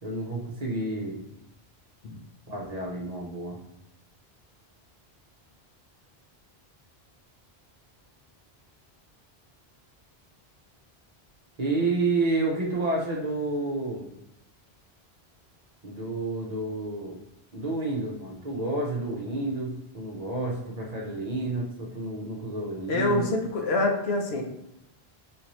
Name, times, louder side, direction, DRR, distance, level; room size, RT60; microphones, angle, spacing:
voice 1, 0.0-1.2 2.5-3.6 11.6-14.1 15.8-17.2 17.5-23.3, right 2 dB, 45° right, -2 dB, 0.8 m, -30 dB
voice 2, 22.9-24.4, left 2 dB, 80° left, 2 dB, 0.9 m, -25 dB
3.6 x 2.8 x 3.0 m, 0.84 s
omnidirectional pair, 1.1 m